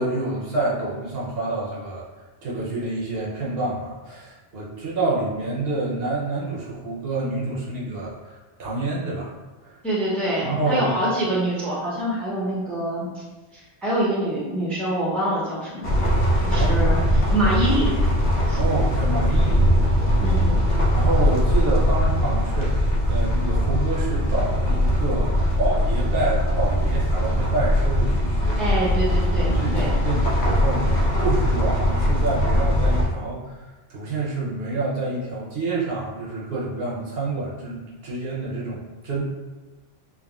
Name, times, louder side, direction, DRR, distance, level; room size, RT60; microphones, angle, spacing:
voice 1, 0.0-2.0 2.4-9.3 9.6-9.8 10.4-10.9 16.5-16.8 18.5-19.7 20.9-28.7 29.4-33.6 33.9-39.2, right 2 dB, 65° right, -5 dB, 0.9 m, -28 dB
voice 2, 9.8-13.2 13.5-16.0 16.4-17.9 18.5-18.6 20.2-20.6 28.6-29.9, right 1 dB, ahead, -6 dB, 0.5 m, -25 dB
sound 1, 15.8-33.0, equal, 90° left, 1.0 m, -21 dB
3.5 x 2.2 x 2.3 m, 1.2 s
omnidirectional pair, 1.1 m